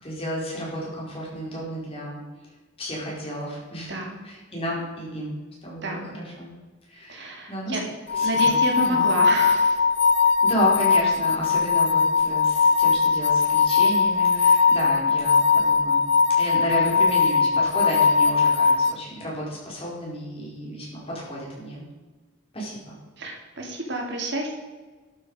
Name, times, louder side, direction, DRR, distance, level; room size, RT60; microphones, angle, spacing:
voice 1, 0.0-2.2 2.8-3.9 4.2-5.4 5.6-6.5 6.9-7.8 8.1-9.0 10.4-16.0 16.4-21.8 22.5-22.9, equal, 30° left, -4 dB, 4.8 m, -32 dB
voice 2, 3.9-4.2 5.8-6.1 7.1-7.8 8.2-9.8 23.2-24.5, right 1 dB, 60° right, 1 dB, 2.6 m, -30 dB
sound 1, 8.1-18.9, left 5 dB, 55° left, 0.7 m, -20 dB
12.0 x 10.0 x 4.9 m, 1.3 s
head